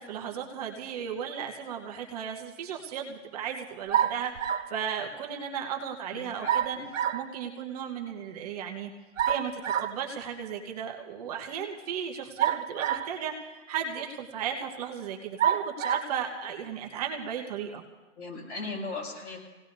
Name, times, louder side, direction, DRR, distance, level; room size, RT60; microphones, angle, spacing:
voice 1, 0.0-6.8 7.1-8.9 9.3-17.8, right 8 dB, 30° right, 1 dB, 1.0 m, -35 dB
sound 1, 3.9-4.8 6.5-7.3 9.2-10.0 12.4-13.2 14.0-14.1 15.4-16.1, right 9 dB, 80° right, 1.1 m, -28 dB
voice 2, 6.1-6.9 18.2-19.4, left 3 dB, 65° left, -2 dB, 6.4 m, -38 dB
26.0 x 17.5 x 2.7 m, 1.2 s
hypercardioid pair, 155°, 38 cm